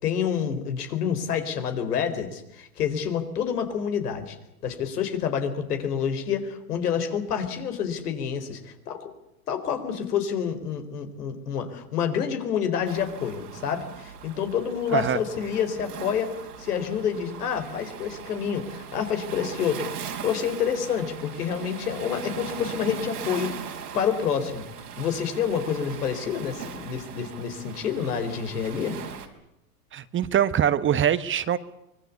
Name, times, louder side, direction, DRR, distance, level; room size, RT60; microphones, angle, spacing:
voice 1, 0.0-4.4 4.6-9.1 9.5-16.3 16.6-24.6 25.0-29.0, left 7 dB, 80° left, 4.4 m, -28 dB
Waves surf, 12.9-29.3, right 7 dB, 90° right, 4.4 m, -39 dB
voice 2, 29.9-31.6, right 9 dB, 25° right, 1.2 m, -23 dB
25.0 x 21.0 x 8.4 m
hypercardioid pair, 110°, 45 cm